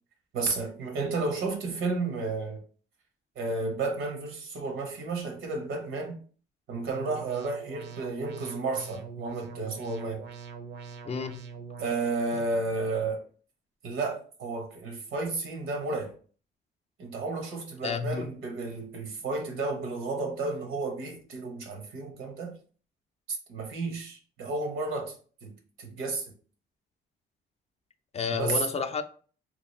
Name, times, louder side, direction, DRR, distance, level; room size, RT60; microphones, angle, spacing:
voice 1, 0.3-2.6 3.4-6.2 6.7-10.3 11.8-13.2 13.8-16.1 17.0-22.6 23.3-25.2 25.4-26.3 28.3-28.6, right 3 dB, 85° right, 0.9 m, -32 dB
sound 1, 6.9-11.9, right 5 dB, 60° right, 0.5 m, -43 dB
voice 2, 11.0-11.4 17.8-18.3 28.1-29.0, left 5 dB, 35° left, 0.3 m, -30 dB
2.9 x 2.4 x 3.1 m
cardioid pair, 90°, 20 cm